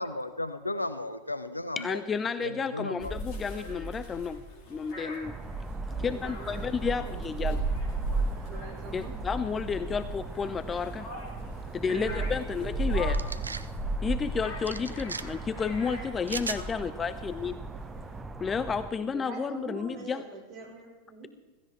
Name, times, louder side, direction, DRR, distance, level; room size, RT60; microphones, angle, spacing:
voice 1, 0.0-2.0 2.4-3.1, left 2 dB, 85° left, 12 dB, 0.9 m, -34 dB
voice 2, 1.8-4.4 4.7-5.4 6.0-7.6 8.9-11.1 11.7-13.2 14.0-17.6 18.4-20.2, left 6 dB, 20° left, 13 dB, 0.6 m, -31 dB
sound 1, 3.0-18.2, right 2 dB, 40° left, 4.4 m, -36 dB
sound 2, 5.2-18.9, right 3 dB, 15° right, 1.2 m, -41 dB
voice 3, 5.9-6.7 7.0-7.6 8.5-9.1 11.7-12.6 19.1-21.3, right 3 dB, 40° right, 0 dB, 5.4 m, -43 dB
sound 3, 13.1-13.7 14.7-15.2 16.3-16.6, right 4 dB, 75° right, 0.6 m, -36 dB
16.0 x 15.5 x 4.5 m, 1.3 s
figure-of-eight pair, 90°, 0 cm